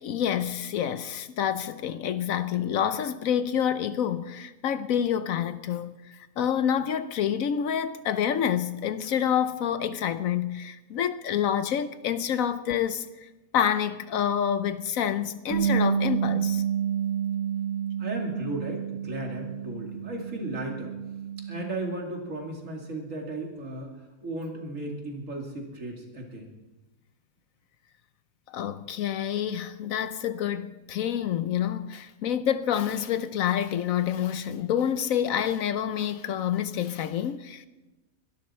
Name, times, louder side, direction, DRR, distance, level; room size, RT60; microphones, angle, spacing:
voice 1, 0.0-13.3 13.5-16.6 28.5-37.7, left 9 dB, 70° left, 1.0 m, -28 dB
Bass guitar, 15.5-21.8, right 8 dB, 85° right, 2.4 m, -29 dB
voice 2, 18.0-20.9 21.5-23.9 24.2-26.5, right 1 dB, 60° right, 2.8 m, -35 dB
23.0 x 12.0 x 4.3 m
omnidirectional pair, 1.6 m